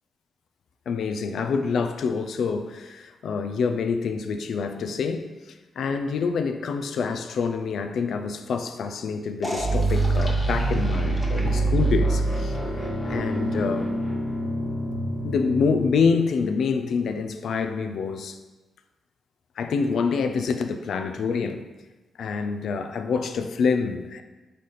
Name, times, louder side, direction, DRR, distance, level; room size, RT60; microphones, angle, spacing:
voice 1, 0.9-5.3 5.8-12.6 13.1-14.0 15.2-18.4 19.6-21.6 22.2-24.2, left 5 dB, 75° left, 7 dB, 0.3 m, -26 dB
sound 1, 9.4-16.0, right 2 dB, 20° left, 1.1 m, -25 dB
4.1 x 3.2 x 4.0 m, 1.2 s
cardioid pair, 65°, 0 cm